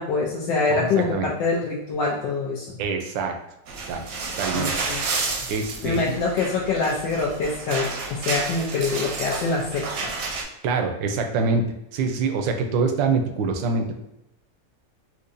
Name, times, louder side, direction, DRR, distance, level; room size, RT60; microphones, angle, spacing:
voice 1, 0.0-2.8 4.5-5.0 5.8-10.1, left 4 dB, 90° left, -3 dB, 1.3 m, -25 dB
voice 2, 0.7-1.3 2.8-3.4 3.9-4.0 4.4-4.7 5.5-6.0 10.6-11.7 11.9-14.0, right 4 dB, 85° right, 5 dB, 1.3 m, -25 dB
sound 1, 3.7-10.4, right 4 dB, 65° right, 1.0 m, -31 dB
4.5 x 2.6 x 2.5 m, 0.87 s
omnidirectional pair, 1.9 m